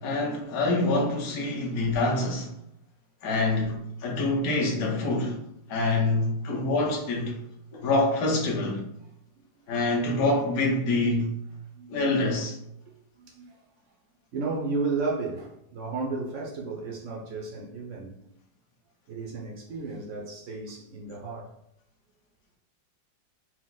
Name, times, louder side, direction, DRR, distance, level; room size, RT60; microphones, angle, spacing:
voice 1, 0.0-2.5 3.2-5.4 5.7-7.4 7.7-8.8 9.7-11.3 11.9-12.6, left 2 dB, 55° left, 1.2 m, -26 dB
voice 2, 12.9-13.6 14.3-18.2 19.1-21.5, right 3 dB, 75° right, 0.7 m, -33 dB
4.5 x 2.1 x 4.0 m
omnidirectional pair, 2.0 m